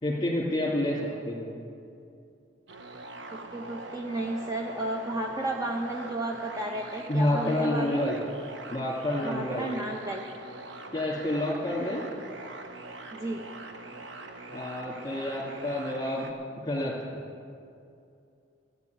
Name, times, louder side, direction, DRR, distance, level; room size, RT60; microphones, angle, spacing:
voice 1, 0.0-1.5 7.1-8.2 8.7-9.7 10.9-12.0 14.5-16.3 16.6-17.2, left 1 dB, 25° left, -6 dB, 2.5 m, -29 dB
sound 1, 2.7-16.3, right 2 dB, 85° right, 1.2 m, -43 dB
voice 2, 3.3-8.1 9.2-10.2 13.1-13.4, right 1 dB, 20° right, 1 dB, 0.9 m, -33 dB
14.5 x 8.9 x 9.4 m, 2.5 s
head